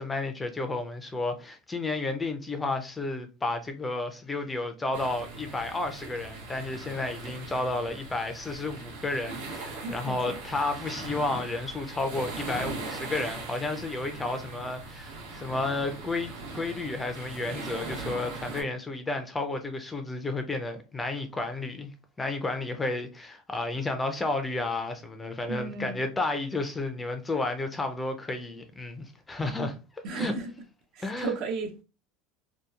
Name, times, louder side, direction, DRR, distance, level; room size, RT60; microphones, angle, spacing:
voice 1, 0.0-21.9 22.2-29.8 30.1-30.3 31.0-31.3, left 2 dB, 15° left, 0.4 m, -32 dB
sound 1, 4.9-18.6, right 3 dB, 85° right, 0.8 m, -40 dB
voice 2, 9.8-10.4 25.5-26.1 30.0-30.5 30.9-31.8, right 4 dB, 55° right, 0.6 m, -34 dB
2.8 x 2.3 x 2.2 m
supercardioid pair, 125°, 0 cm